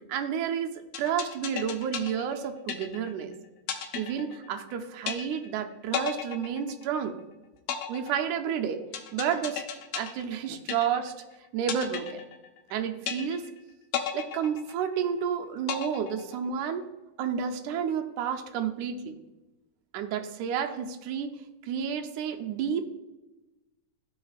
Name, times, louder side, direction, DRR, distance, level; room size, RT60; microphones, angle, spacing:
voice 1, 0.1-3.3 4.0-7.1 7.9-8.8 9.1-9.6 9.9-11.1 11.5-12.2 12.7-13.5 14.1-16.8 17.2-19.2 19.9-21.4 21.6-22.9, right 8 dB, 80° right, 5 dB, 2.1 m, -30 dB
sound 1, 0.9-3.2 3.7-4.7 5.1-5.6 5.9-7.2 7.7-11.2 11.7-12.7 13.1-13.6 13.9-15.2 15.7-16.7, left 9 dB, 85° left, 1.3 m, -35 dB
14.0 x 4.7 x 2.4 m, 1.1 s
omnidirectional pair, 3.5 m